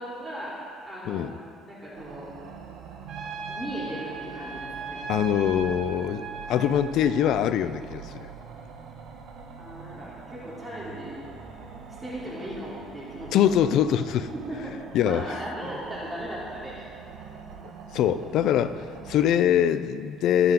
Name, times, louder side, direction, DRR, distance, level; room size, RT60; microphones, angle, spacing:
voice 1, 0.0-1.3 1.6-2.3 3.5-5.1 9.6-11.2 12.0-13.5 14.3-16.9, right 1 dB, 20° right, -7 dB, 3.4 m, -37 dB
sound 1, 1.9-19.4, right 5 dB, 75° right, 1.5 m, -44 dB
Trumpet, 3.1-7.4, right 4 dB, 55° right, 1.5 m, -38 dB
voice 2, 5.1-8.3 13.3-14.3 14.9-15.3 17.9-20.5, left 10 dB, 65° left, 13 dB, 0.5 m, -23 dB
22.0 x 7.8 x 3.8 m, 2.4 s
cardioid pair, 110°, 0 cm